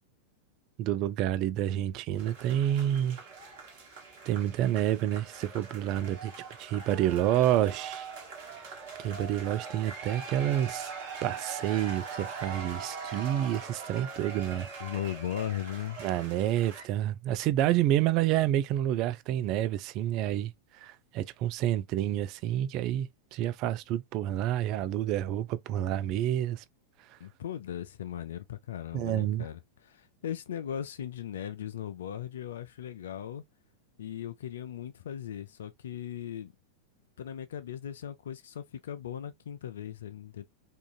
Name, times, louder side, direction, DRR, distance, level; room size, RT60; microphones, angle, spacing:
voice 1, 0.8-3.2 4.3-6.3 6.6-8.1 9.0-10.9 11.2-14.7 16.0-20.5 20.8-26.6 28.9-29.5, right 12 dB, 45° right, 0.3 m, -29 dB
sound 1, 2.2-16.8, right 5 dB, 60° right, 1.5 m, -42 dB
voice 2, 14.8-16.1 27.2-33.4 34.0-36.5 37.2-40.5, left 10 dB, 65° left, 0.3 m, -38 dB
3.6 x 2.5 x 2.3 m
figure-of-eight pair, 90°, 0 cm